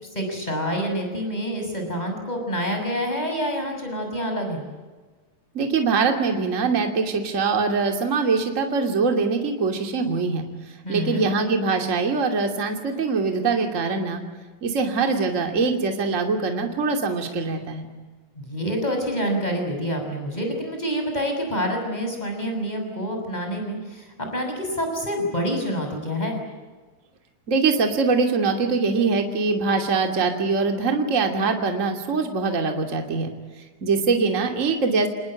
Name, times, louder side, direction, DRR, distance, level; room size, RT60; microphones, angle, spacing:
voice 1, 0.1-4.7 10.8-11.2 18.3-26.4, equal, 10° left, 3 dB, 6.5 m, -27 dB
voice 2, 5.5-10.4 10.9-14.2 14.6-17.9 27.5-33.3 33.8-35.1, right 4 dB, 25° right, 4 dB, 2.6 m, -23 dB
27.0 x 20.5 x 9.0 m, 1.3 s
omnidirectional pair, 4.0 m